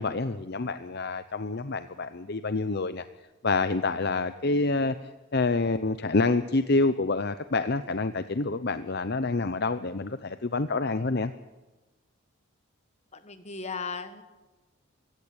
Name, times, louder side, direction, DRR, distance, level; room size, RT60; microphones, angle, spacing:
voice 1, 0.0-3.1 3.4-5.0 5.3-11.3, left 3 dB, 50° left, 12 dB, 0.7 m, -27 dB
voice 2, 13.1-14.2, left 5 dB, 30° left, 10 dB, 1.6 m, -36 dB
24.0 x 16.5 x 8.8 m, 1.2 s
head